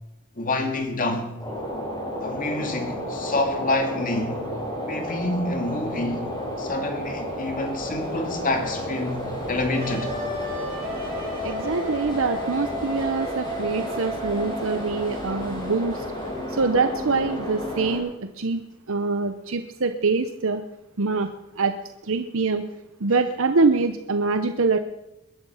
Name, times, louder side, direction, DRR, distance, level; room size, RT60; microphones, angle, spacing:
voice 1, 0.4-1.3 2.2-4.4 4.9-6.3 6.6-10.1, left 2 dB, 40° left, 2.3 m, -27 dB
sound 1, 1.4-18.0, equal, 20° left, 5.5 m, -32 dB
Wind instrument woodwind instrument, 9.7-15.2, left 1 dB, 15° right, 6.0 m, -34 dB
voice 2, 11.4-16.0 16.5-18.1 18.4-18.6 18.9-20.6 21.0-21.3 21.6-21.7 22.1-22.6 23.0-24.8, right 4 dB, 65° right, 0.8 m, -24 dB
21.5 x 11.5 x 5.7 m
head